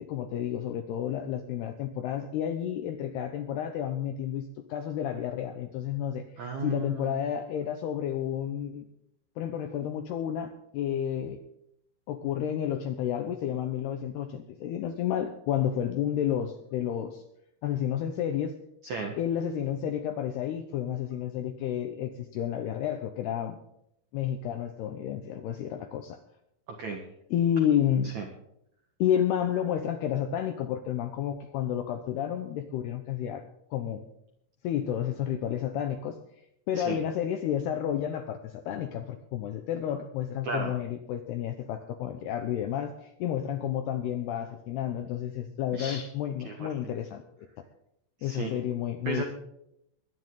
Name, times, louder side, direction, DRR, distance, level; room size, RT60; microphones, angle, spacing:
voice 1, 0.0-6.3 6.6-8.9 9.4-11.4 12.1-17.2 17.6-18.5 19.2-23.6 24.1-26.2 27.3-28.1 29.0-33.5 33.7-34.1 34.6-36.2 36.7-47.5 48.2-49.2, left 10 dB, 80° left, 7 dB, 2.4 m, -31 dB
voice 2, 6.4-7.2 18.8-19.2 26.8-27.0 28.1-28.2 36.7-37.0 40.4-40.7 45.7-46.1 46.4-46.7 48.2-48.5 49.0-49.2, right 3 dB, 90° right, 3 dB, 1.6 m, -34 dB
22.0 x 10.0 x 3.9 m, 0.77 s
omnidirectional pair, 5.8 m